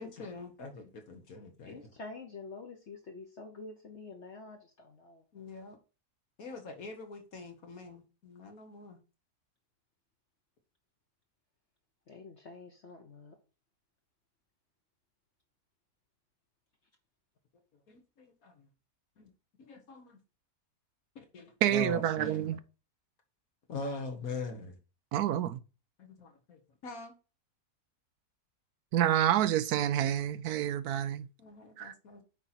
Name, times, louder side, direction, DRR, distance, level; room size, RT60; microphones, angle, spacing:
voice 1, 0.0-1.9 5.3-5.8 6.4-9.0 17.9-18.7 19.2-19.3 19.7-20.2 21.2-22.6 23.7-24.8 26.0-27.1 31.4-32.2, left 3 dB, 65° left, 1.6 m, -43 dB
voice 2, 1.7-5.2 12.1-13.4, left 3 dB, 50° left, 1.3 m, -47 dB
voice 3, 21.6-22.6 25.1-25.6 28.9-31.3 31.8-31.9, right 11 dB, 85° right, 1.1 m, -28 dB
9.0 x 4.3 x 4.2 m
omnidirectional pair, 1.6 m